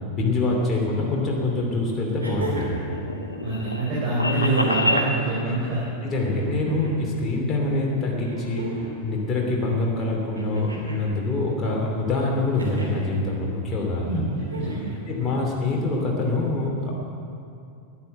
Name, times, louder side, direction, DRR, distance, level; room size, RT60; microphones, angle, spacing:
voice 1, 0.1-2.8 5.5-5.6 6.0-14.2 15.1-16.9, left 2 dB, 20° left, -3 dB, 2.8 m, -25 dB
sound 1, 1.1-1.2 2.2-2.9 4.3-5.0 6.3-7.0 8.2-9.0 10.4-11.1 12.6-13.1 14.4-15.0 16.3-16.4, right 1 dB, 75° right, 2.9 m, -36 dB
sound 2, 2.1-5.1, left 1 dB, 80° left, 0.9 m, -27 dB
voice 2, 3.4-5.8 14.0-14.9 15.2-15.4, right 2 dB, 40° right, -7 dB, 4.1 m, -25 dB
11.5 x 10.0 x 7.7 m, 2.5 s
figure-of-eight pair, 90°, 0 cm